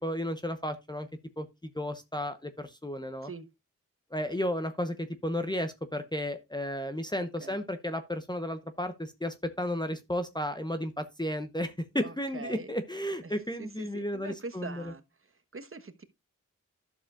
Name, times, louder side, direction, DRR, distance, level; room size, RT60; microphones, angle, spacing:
voice 1, 0.0-1.1 1.4-3.3 4.1-14.8, left 1 dB, 15° left, 0.9 m, -33 dB
voice 2, 7.2-7.6 12.0-12.7 13.2-15.0 15.5-16.0, right 4 dB, 45° right, 1.2 m, -43 dB
11.5 x 6.8 x 2.4 m
cardioid pair, 50°, 31 cm